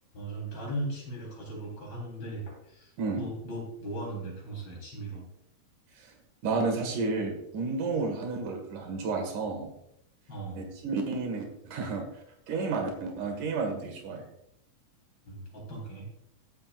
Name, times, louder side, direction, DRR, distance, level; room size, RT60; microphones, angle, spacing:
voice 1, 0.1-5.3 10.3-10.6 15.2-16.1, right 1 dB, 40° left, -2 dB, 4.5 m, -38 dB
voice 2, 6.4-9.7 10.6-12.0 12.5-14.2, right 4 dB, 80° right, 3 dB, 3.4 m, -31 dB
21.5 x 7.7 x 2.5 m, 0.76 s
omnidirectional pair, 3.6 m